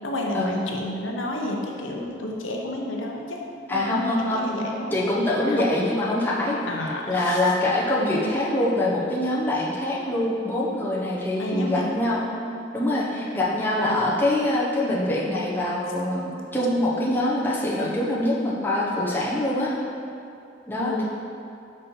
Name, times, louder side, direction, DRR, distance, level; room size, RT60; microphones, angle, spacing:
voice 1, 0.0-3.4 3.7-5.0 5.5-5.7 6.7-7.4 8.0-8.3 11.4-11.9 20.8-21.0, left 1 dB, 85° left, -1 dB, 0.8 m, -30 dB
voice 2, 3.7-4.4 4.9-6.6 7.1-12.2 12.7-19.7 20.7-21.0, left 1 dB, 10° left, -6 dB, 0.9 m, -24 dB
5.4 x 4.3 x 5.4 m, 2.6 s
head